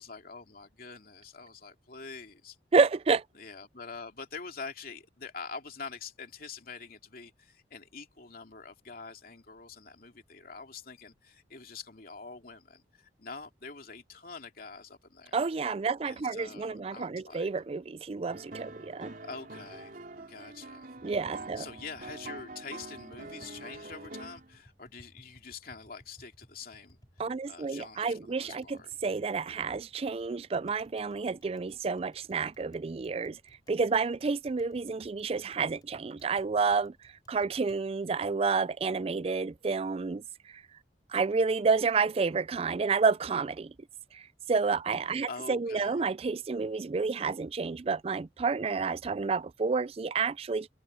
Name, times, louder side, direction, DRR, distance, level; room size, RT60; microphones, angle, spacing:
voice 1, 0.0-2.6 3.3-15.4 16.0-17.5 19.2-19.9 20.3-20.9 21.6-27.0 27.5-28.9 45.0-46.0, left 4 dB, 55° left, 2.8 m, -45 dB
voice 2, 2.7-3.2 15.3-19.1 21.0-21.7 27.2-33.4 33.7-36.9 37.3-40.2 41.1-43.7 44.1-44.2 44.5-50.7, right 4 dB, 35° right, 0.4 m, -29 dB
sound 1, 18.3-24.5, right 2 dB, 50° right, 3.4 m, -45 dB
Tap, 21.0-37.8, equal, 25° left, 4.1 m, -61 dB
head